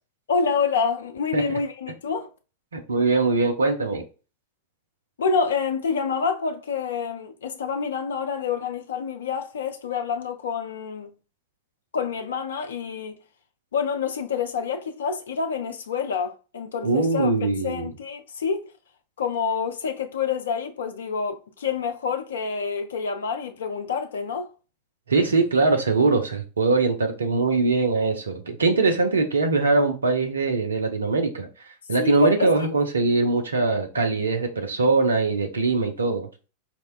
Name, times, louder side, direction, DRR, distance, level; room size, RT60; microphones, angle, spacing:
voice 1, 0.3-2.3 5.2-11.1 11.9-13.1 13.7-17.3 17.6-18.7 19.2-24.5 32.0-32.7, left 5 dB, 65° left, 0.3 m, -27 dB
voice 2, 2.7-4.0 16.8-17.9 25.1-31.5 31.9-36.3, right 3 dB, 70° right, 0.5 m, -22 dB
4.2 x 2.1 x 2.3 m
figure-of-eight pair, 90°, 0 cm